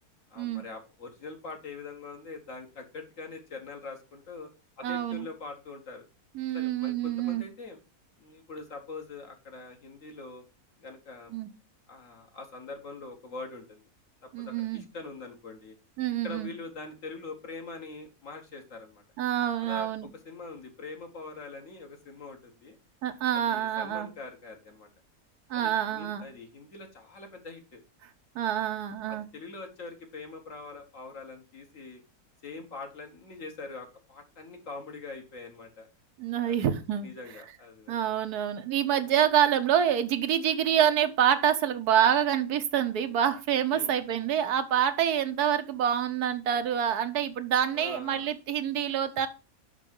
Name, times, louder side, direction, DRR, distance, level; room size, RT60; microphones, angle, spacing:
voice 1, 0.3-4.5 4.8-6.1 6.5-7.8 8.2-10.5 10.8-11.3 11.9-13.8 14.2-15.8 16.2-19.0 19.6-19.9 20.3-22.8 23.3-24.9 25.5-27.8 29.1-32.0 32.4-35.9 36.4-36.6 37.0-38.0 38.8-38.9 43.7-43.9 47.7-48.3, left 3 dB, 55° left, 4 dB, 1.7 m, -43 dB
voice 2, 4.8-5.3 6.3-7.4 11.3-11.5 14.3-14.8 16.0-16.5 19.2-20.1 23.0-24.1 25.5-26.3 28.3-29.3 36.2-37.1 37.9-49.3, right 9 dB, 80° right, 9 dB, 1.3 m, -27 dB
6.1 x 5.7 x 5.3 m, 0.31 s
omnidirectional pair, 1.6 m